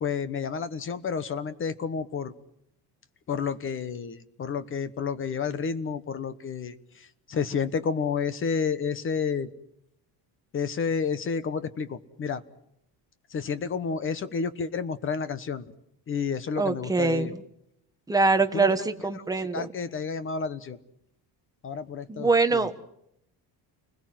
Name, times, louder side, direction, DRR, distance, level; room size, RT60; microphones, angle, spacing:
voice 1, 0.0-2.3 3.3-9.5 10.5-12.4 13.3-15.7 16.1-17.3 18.5-18.9 19.1-19.2 19.5-20.8 21.6-22.7, left 6 dB, 30° left, 13 dB, 1.2 m, -30 dB
voice 2, 16.6-17.4 18.1-19.7 22.1-22.7, right 3 dB, 10° right, 7 dB, 1.1 m, -24 dB
30.0 x 21.0 x 7.7 m, 0.77 s
cardioid pair, 175°, 41 cm